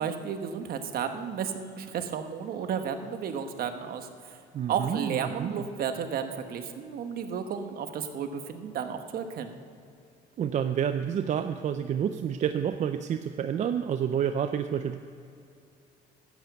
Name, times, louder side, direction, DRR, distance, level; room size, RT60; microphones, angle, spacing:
voice 1, 0.0-4.4 4.7-9.5, right 7 dB, 60° right, 7 dB, 1.2 m, -33 dB
voice 2, 4.5-5.6 10.4-15.0, right 8 dB, 45° right, 8 dB, 0.5 m, -29 dB
12.0 x 8.3 x 7.9 m, 2.6 s
cardioid pair, 110°, 17 cm